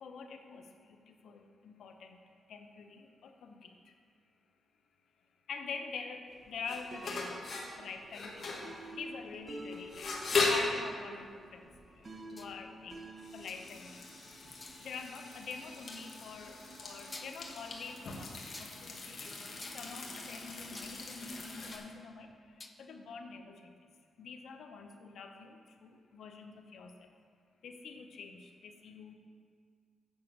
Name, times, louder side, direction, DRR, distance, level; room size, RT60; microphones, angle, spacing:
voice 1, 0.0-3.9 5.5-13.0 13.3-14.0 14.8-19.3 19.7-23.7 24.2-27.1 27.6-29.1, left 5 dB, 75° left, 5 dB, 0.8 m, -46 dB
sound 1, 6.3-21.8, left 3 dB, 55° left, 1.6 m, -39 dB
sound 2, 6.9-13.8, right 2 dB, 35° right, 0.9 m, -49 dB
sound 3, 12.4-12.6 13.5-13.8 14.6-14.9 15.9-16.2 16.7-16.8 17.1-17.6 18.5-18.8 19.6-21.0 21.3-22.0 22.3-22.8, left 2 dB, 20° left, 0.5 m, -50 dB
7.4 x 5.8 x 7.4 m, 2.1 s
cardioid pair, 80°, 0 cm